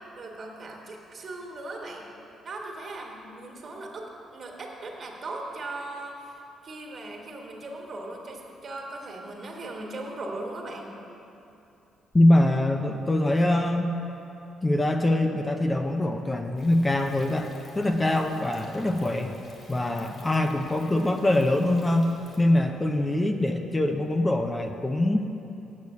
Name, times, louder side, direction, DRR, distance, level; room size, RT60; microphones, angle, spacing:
voice 1, 0.2-2.1 2.4-10.9, right 2 dB, 50° right, 0 dB, 1.8 m, -38 dB
voice 2, 12.1-13.9 14.6-19.4 19.7-22.1 22.4-25.2, left 1 dB, 20° left, 4 dB, 0.6 m, -23 dB
Thunder, 16.6-22.4, left 2 dB, 55° left, 2.3 m, -53 dB
8.5 x 6.7 x 8.3 m, 2.8 s
cardioid pair, 90°, 0 cm